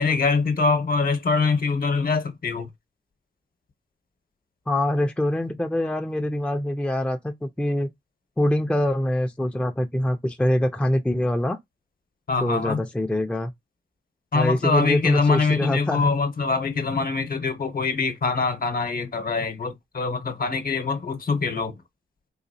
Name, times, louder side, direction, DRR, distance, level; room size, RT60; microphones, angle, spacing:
voice 1, 0.0-2.7 12.3-12.8 14.3-21.8, left 4 dB, 50° left, 0.9 m, -24 dB
voice 2, 4.7-7.9 8.4-11.6 12.4-13.5 14.3-16.1, left 1 dB, 5° left, 0.5 m, -24 dB
4.0 x 2.6 x 2.6 m
cardioid pair, 65°, 19 cm